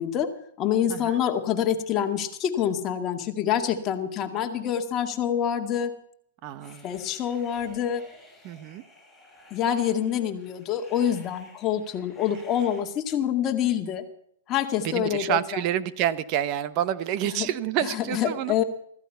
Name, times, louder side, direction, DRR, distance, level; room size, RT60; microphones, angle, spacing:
voice 1, 0.0-5.9 6.8-8.0 9.5-14.0 14.5-15.6 17.3-17.5 17.8-18.6, left 9 dB, 25° left, 4 dB, 2.1 m, -26 dB
voice 2, 6.4-6.9 8.4-8.8 14.8-18.5, right 11 dB, 35° right, 15 dB, 1.0 m, -28 dB
sound 1, 6.6-12.8, left 2 dB, ahead, 6.3 m, -53 dB
15.0 x 14.5 x 5.7 m, 0.69 s
hypercardioid pair, 140°, 0 cm